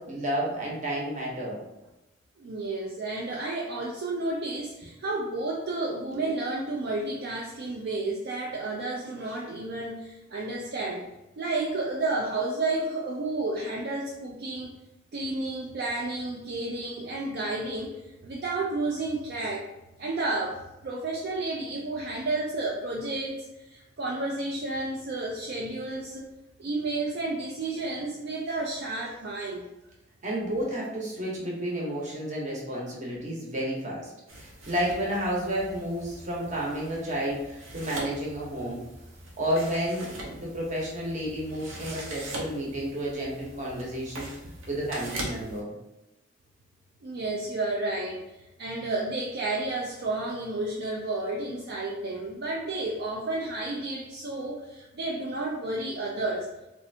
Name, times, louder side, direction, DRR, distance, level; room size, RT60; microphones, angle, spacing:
voice 1, 0.0-1.6 30.2-38.8 39.4-44.3 44.7-45.7, equal, 35° right, -4 dB, 0.8 m, -31 dB
voice 2, 2.4-11.1 11.4-14.7 15.1-19.7 20.0-26.2 26.6-29.6 47.0-56.5, right 2 dB, 55° right, -2 dB, 0.4 m, -31 dB
sound 1, 34.3-45.6, right 1 dB, 90° right, 0.7 m, -41 dB
3.2 x 2.6 x 2.6 m, 1.0 s
head